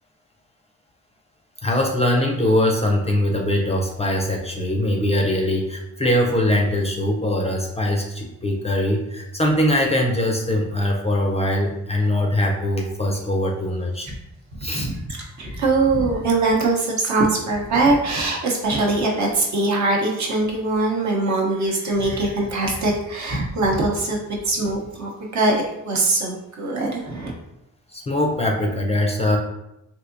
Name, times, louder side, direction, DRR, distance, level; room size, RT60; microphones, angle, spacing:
voice 1, 1.6-14.1 14.6-14.9 27.9-29.4, left 1 dB, 20° left, 0 dB, 0.4 m, -22 dB
voice 2, 14.7-27.3, right 2 dB, 60° right, -2 dB, 0.8 m, -22 dB
3.4 x 2.7 x 2.6 m, 0.87 s
cardioid pair, 110°, 32 cm